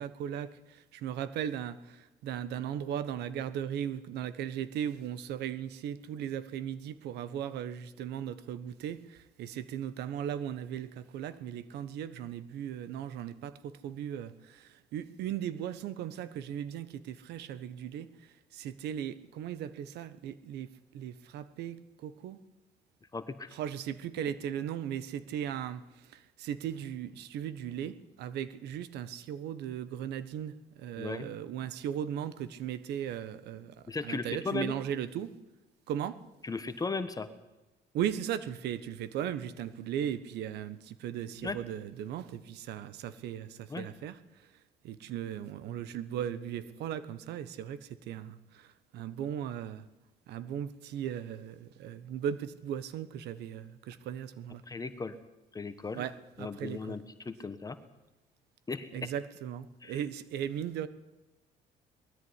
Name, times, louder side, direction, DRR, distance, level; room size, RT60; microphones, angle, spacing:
voice 1, 0.0-22.4 23.5-35.4 35.9-36.2 37.9-44.5 44.8-49.9 50.3-54.6 55.9-57.0 58.9-60.9, right 9 dB, 80° right, 14 dB, 1.3 m, -37 dB
voice 2, 23.1-23.5 31.0-31.3 33.9-34.7 36.4-37.3 41.4-41.6 43.7-43.9 54.7-55.1 55.5-56.0 56.4-57.8 58.7-58.9 59.8-60.0, left 4 dB, 20° left, 10 dB, 1.3 m, -36 dB
20.5 x 14.0 x 9.8 m, 1.0 s
cardioid pair, 110°, 17 cm